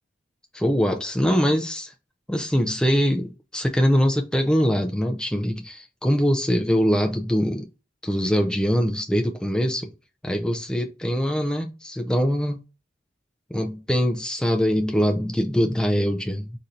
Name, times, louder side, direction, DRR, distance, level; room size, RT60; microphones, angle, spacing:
voice 1, 0.5-1.9 2.3-7.7 8.0-9.9 10.2-12.6 13.5-16.5, equal, 5° left, 0.3 m, -23 dB
3.9 x 2.6 x 4.2 m
head